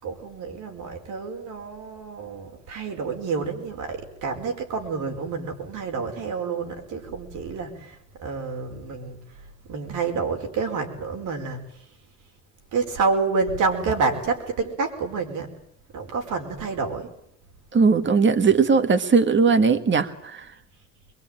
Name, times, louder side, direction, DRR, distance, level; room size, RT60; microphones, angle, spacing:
voice 1, 0.0-9.2 9.7-11.6 12.7-15.5 15.9-17.1, right 4 dB, 85° right, 5.0 m, -28 dB
voice 2, 17.7-20.5, right 5 dB, 40° right, 1.9 m, -19 dB
23.5 x 23.0 x 9.0 m
cardioid pair, 90°, 30 cm